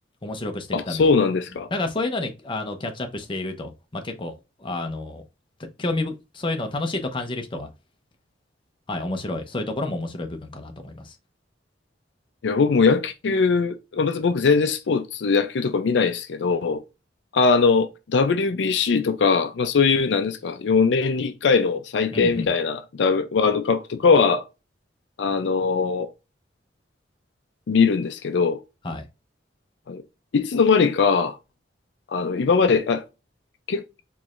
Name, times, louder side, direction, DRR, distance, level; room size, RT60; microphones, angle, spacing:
voice 1, 0.2-1.1 1.7-4.3 4.6-5.2 5.8-7.7 8.9-11.1 22.1-22.5 28.8-29.1, left 2 dB, 25° left, 0.6 m, -30 dB
voice 2, 0.7-1.7 12.4-16.8 17.3-24.5 25.2-26.1 27.7-28.6 29.9-30.0 30.3-31.4 32.1-33.0 33.7-33.8, left 5 dB, 70° left, 0.4 m, -21 dB
4.6 x 3.1 x 2.5 m
head